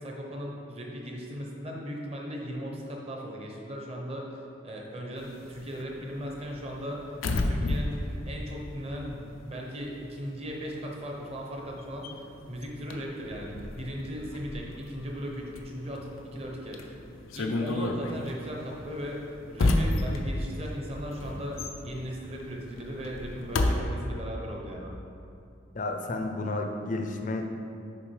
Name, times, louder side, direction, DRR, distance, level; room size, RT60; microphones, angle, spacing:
voice 1, 0.0-7.2 7.4-7.9 8.3-21.6 21.8-24.9, equal, 30° right, -1 dB, 1.0 m, -37 dB
sound 1, 5.2-9.6 9.9-23.8, left 2 dB, 90° left, 0.6 m, -32 dB
voice 2, 25.7-27.5, left 2 dB, 40° left, 4 dB, 0.6 m, -31 dB
7.1 x 5.2 x 4.8 m, 2.7 s
head